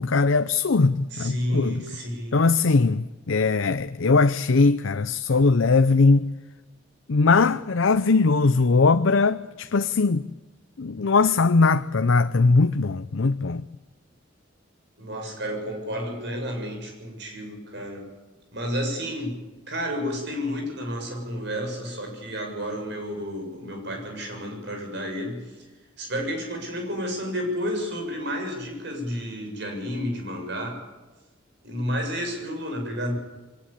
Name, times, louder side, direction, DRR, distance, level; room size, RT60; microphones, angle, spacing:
voice 1, 0.0-1.8 2.3-6.3 7.1-10.3 10.8-13.6, left 4 dB, 90° left, 0.7 m, -20 dB
voice 2, 1.1-2.4 15.0-18.1 18.5-19.4 19.7-25.5 26.0-30.8 31.6-33.2, equal, 60° right, 7.1 m, -31 dB
23.0 x 19.0 x 8.4 m
head